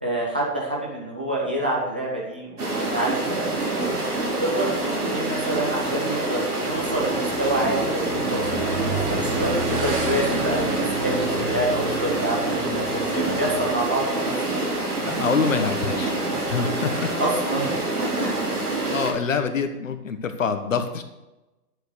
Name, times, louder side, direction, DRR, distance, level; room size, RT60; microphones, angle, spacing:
voice 1, 0.0-4.0 4.4-14.3 17.2-17.7 18.0-18.3, right 1 dB, 5° right, -4 dB, 0.4 m, -27 dB
sound 1, 2.6-19.1, right 2 dB, 75° right, 4.5 m, -26 dB
Motorcycle / Engine, 6.7-13.7, right 2 dB, 35° right, 3.2 m, -31 dB
voice 2, 15.0-17.1 18.2-18.3 18.9-21.0, left 5 dB, 55° left, 8 dB, 1.3 m, -26 dB
11.5 x 7.0 x 6.5 m, 1.0 s
figure-of-eight pair, 130°, 46 cm